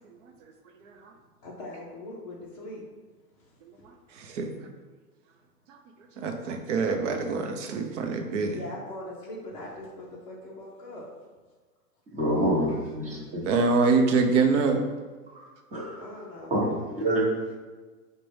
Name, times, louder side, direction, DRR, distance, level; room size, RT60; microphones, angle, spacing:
voice 1, 1.4-2.8 3.3-3.8 8.5-11.1 16.0-16.6, left 1 dB, 25° left, -6 dB, 0.4 m, -41 dB
voice 2, 4.1-4.6 5.7-5.8 6.2-8.6 13.5-14.8, right 4 dB, 50° right, 4 dB, 0.6 m, -25 dB
voice 3, 12.1-13.4 15.7-16.0 16.5-17.2, right 1 dB, 15° right, -5 dB, 0.9 m, -27 dB
4.8 x 2.2 x 3.2 m, 1.4 s
hypercardioid pair, 130°, 48 cm